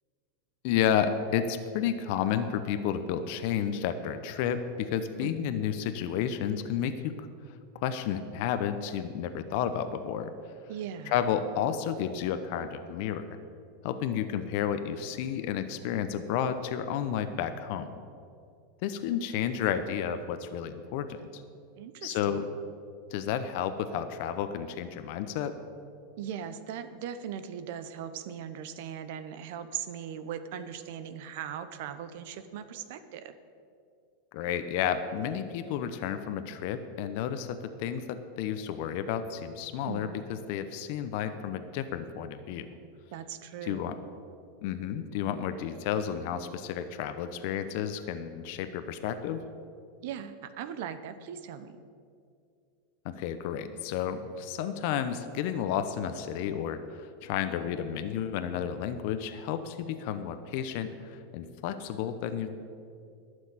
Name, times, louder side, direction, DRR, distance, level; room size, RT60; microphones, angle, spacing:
voice 1, 0.6-7.3 7.7-10.3 11.1-13.2 13.8-18.0 18.8-21.4 22.0-22.4 23.1-25.5 34.3-40.1 40.5-42.7 43.6-44.0 44.6-49.4 53.0-62.6, left 9 dB, 60° left, 10 dB, 0.8 m, -31 dB
voice 2, 5.2-5.6 10.7-11.1 21.8-22.5 26.2-33.3 39.8-40.2 43.1-44.0 50.0-51.8, right 9 dB, 65° right, 11 dB, 0.8 m, -39 dB
12.0 x 6.4 x 8.9 m, 2.4 s
hypercardioid pair, 100°, 0 cm